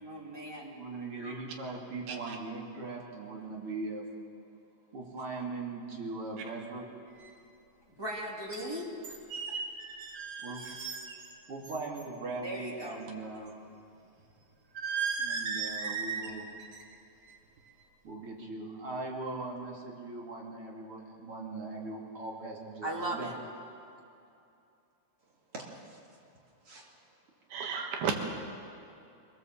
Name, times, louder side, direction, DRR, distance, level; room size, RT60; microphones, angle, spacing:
voice 1, 0.0-0.7 8.0-9.2 9.5-9.6 12.4-13.0 22.8-23.3, right 1 dB, 10° right, -3 dB, 2.0 m, -38 dB
voice 2, 0.7-4.0 4.9-6.8 10.4-10.6 11.5-13.5 15.2-16.5 18.0-23.3 25.5-26.0 26.6-26.9 27.7-27.8, right 3 dB, 40° right, -2 dB, 3.1 m, -40 dB
sound 1, 7.2-7.3 8.5-8.6 9.0-11.3 11.6-12.0 14.7-16.3 16.6-16.9 17.3-17.6, right 5 dB, 60° right, 1.1 m, -36 dB
voice 3, 27.5-28.2, right 6 dB, 75° right, 3 dB, 3.4 m, -33 dB
24.0 x 16.5 x 7.5 m, 2.6 s
omnidirectional pair, 4.5 m